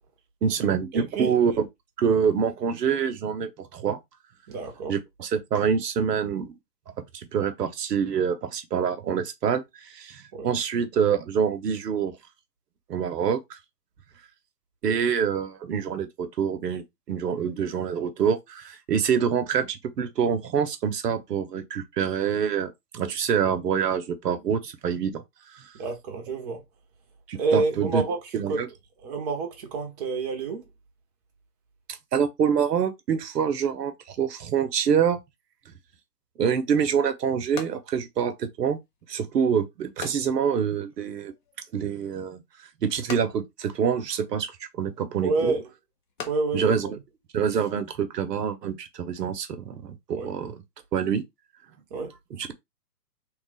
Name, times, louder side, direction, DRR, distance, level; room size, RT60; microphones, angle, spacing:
voice 1, 0.4-1.7 2.0-4.0 4.9-6.5 7.0-12.2 12.9-13.6 14.8-25.2 25.5-25.7 27.3-28.0 28.3-28.7 32.1-35.2 36.4-38.8 39.1-41.3 41.7-42.4 42.8-44.5 44.8-45.6 46.5-46.9 47.3-50.6 50.9-51.2 52.3-52.5, right 7 dB, 70° right, 0.9 m, -26 dB
voice 2, 0.9-1.3 4.5-4.9 10.3-10.5 25.8-26.6 27.4-28.2 28.5-28.6 29.0-30.6 45.2-45.6 46.2-46.9 50.2-50.3 51.9-52.1, right 3 dB, 25° right, 0.8 m, -28 dB
sound 1, 36.7-47.9, left 6 dB, 30° left, 0.6 m, -46 dB
3.2 x 2.4 x 3.2 m
hypercardioid pair, 140°, 50 cm